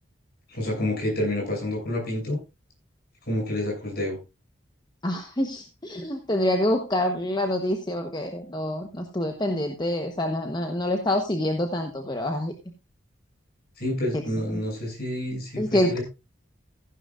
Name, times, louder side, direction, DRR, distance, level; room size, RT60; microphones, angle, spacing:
voice 1, 0.5-2.4 3.3-4.2 13.8-16.0, left 1 dB, 55° left, 0 dB, 7.4 m, -28 dB
voice 2, 5.0-12.5 15.6-16.0, left 1 dB, 20° left, 4 dB, 1.0 m, -26 dB
15.0 x 11.0 x 2.5 m, 0.26 s
head